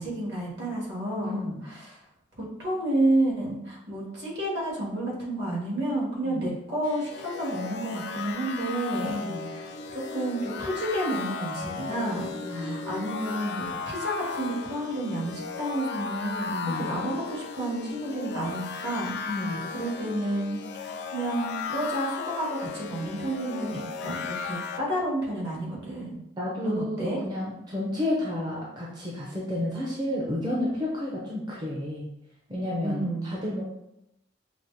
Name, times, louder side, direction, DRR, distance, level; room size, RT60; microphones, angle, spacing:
voice 1, 0.0-2.0 2.4-9.3 9.5-19.2 19.7-26.2 26.6-27.2 32.8-33.3, right 1 dB, 60° right, -5 dB, 1.5 m, -30 dB
voice 2, 1.2-1.6 6.2-6.5 9.0-9.5 12.4-12.8 16.5-16.9 19.2-19.7 26.4-32.1 32.5-33.6, left 1 dB, 20° right, -5 dB, 0.5 m, -31 dB
sound 1, 6.8-24.8, left 5 dB, 60° left, 0.3 m, -36 dB
5.9 x 2.0 x 2.6 m, 0.84 s
head